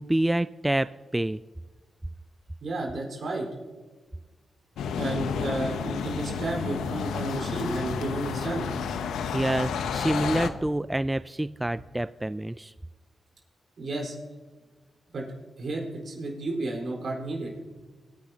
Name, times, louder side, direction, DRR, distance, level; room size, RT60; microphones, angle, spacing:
voice 1, 0.0-1.4 9.2-12.7, right 1 dB, 15° right, 15 dB, 0.3 m, -27 dB
voice 2, 2.6-3.5 5.0-8.7 13.8-14.2 15.1-15.2 15.6-17.5, right 2 dB, 60° right, -1 dB, 4.4 m, -32 dB
sound 1, 4.8-10.5, left 6 dB, 80° left, 0.8 m, -31 dB
23.5 x 10.0 x 2.9 m, 1.3 s
supercardioid pair, 40°, 0 cm